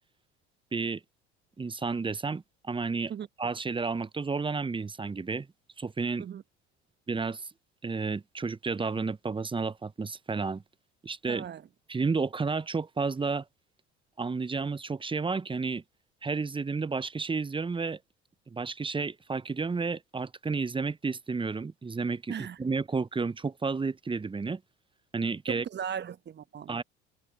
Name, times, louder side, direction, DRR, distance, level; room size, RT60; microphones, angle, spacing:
voice 1, 1.6-3.1 3.4-5.5 5.8-6.3 7.1-7.5 7.8-10.6 11.0-11.5 11.9-13.4 14.2-15.8 16.2-18.0 18.5-24.6 25.1-25.6 26.7-26.8, right 4 dB, 15° right, 1.0 m, -31 dB
voice 2, 11.3-11.6 22.3-22.6 25.5-26.7, right 8 dB, 30° right, 1.3 m, -37 dB
figure-of-eight pair, 60°, 35 cm